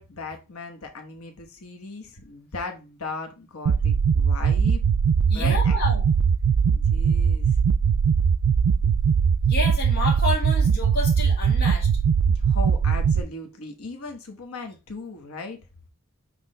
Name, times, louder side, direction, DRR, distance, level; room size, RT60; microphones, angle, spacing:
voice 1, 0.0-4.8 5.3-5.8 6.7-7.6 12.3-15.6, left 3 dB, 85° left, 1.1 m, -37 dB
sound 1, 3.7-13.2, right 6 dB, 70° right, 0.3 m, -20 dB
voice 2, 5.3-6.0 9.5-11.9, left 2 dB, 45° left, 1.8 m, -29 dB
5.9 x 3.2 x 5.3 m
head